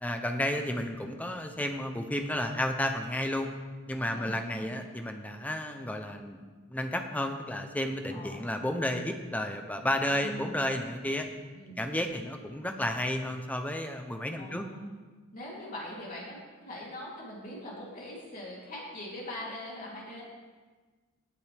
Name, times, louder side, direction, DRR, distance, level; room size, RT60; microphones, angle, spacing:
voice 1, 0.0-3.5 3.9-6.4 6.7-11.3 11.8-14.6, left 1 dB, 5° left, 5 dB, 0.8 m, -32 dB
voice 2, 4.1-4.7 8.1-8.5 10.1-10.7 11.5-11.9 14.4-15.0 15.3-20.2, left 1 dB, 40° left, -5 dB, 3.4 m, -42 dB
18.0 x 7.7 x 3.6 m, 1.4 s
head